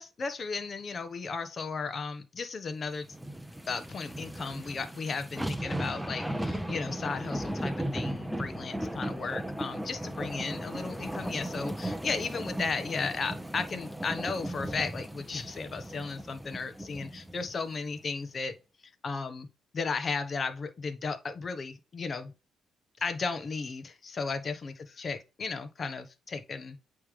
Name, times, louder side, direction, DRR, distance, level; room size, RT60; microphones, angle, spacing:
voice 1, 0.0-3.1 3.7-18.5 19.0-19.5 19.7-22.3 23.0-26.8, left 4 dB, 40° left, 1.0 m, -35 dB
sound 1, 3.1-17.5 18.0-18.1, right 1 dB, 5° right, 0.7 m, -36 dB
8.5 x 3.3 x 3.6 m
cardioid pair, 90°, 0 cm